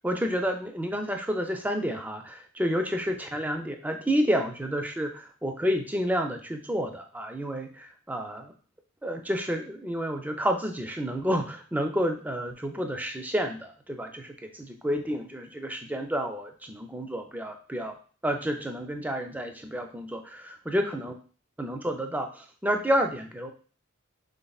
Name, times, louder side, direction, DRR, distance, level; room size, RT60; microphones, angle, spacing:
voice 1, 0.0-8.5 9.0-17.9 18.2-21.1 21.6-23.5, equal, 5° right, 4 dB, 0.4 m, -30 dB
5.3 x 3.7 x 2.3 m, 0.40 s
head